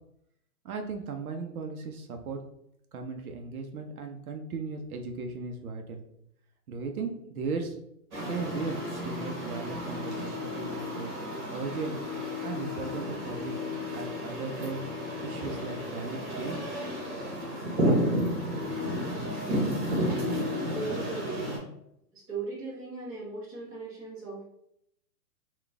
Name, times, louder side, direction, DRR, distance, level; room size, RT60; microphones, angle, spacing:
voice 1, 0.6-2.4 2.9-6.0 6.7-7.8 8.3-11.1 11.5-12.0 12.4-13.6 13.9-14.8 15.2-16.7, right 4 dB, 60° right, 4 dB, 0.6 m, -36 dB
sound 1, 8.1-21.6, equal, 30° right, 1.1 m, -32 dB
voice 2, 20.0-21.5 22.1-24.4, right 3 dB, 10° right, -9 dB, 0.7 m, -37 dB
3.9 x 2.4 x 3.4 m, 0.76 s
hypercardioid pair, 155°, 49 cm